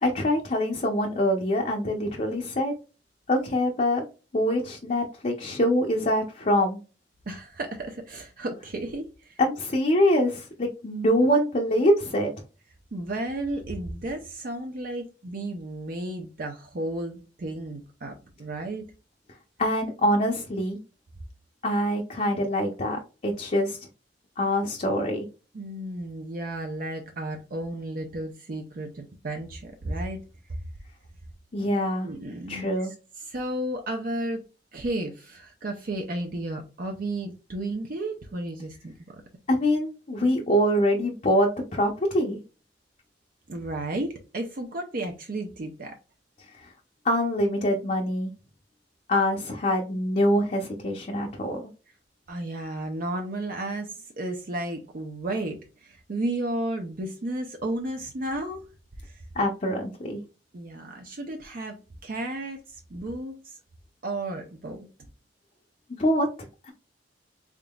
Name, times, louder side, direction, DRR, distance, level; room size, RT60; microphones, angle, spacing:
voice 1, 0.0-2.7 3.3-4.0 4.3-6.8 9.4-12.3 19.6-20.8 21.6-23.8 24.4-25.2 31.5-32.1 32.5-32.9 39.5-42.4 47.0-48.3 49.1-51.7 59.4-60.2 66.0-66.3, equal, 40° left, 0.7 m, -24 dB
voice 2, 7.3-9.4 12.9-18.8 25.5-30.2 30.5-30.6 32.0-34.4 34.7-39.2 43.5-46.0 52.3-58.7 59.0-59.2 60.5-63.6 64.0-64.9, right 1 dB, 50° right, 0.6 m, -33 dB
3.8 x 3.6 x 2.3 m
head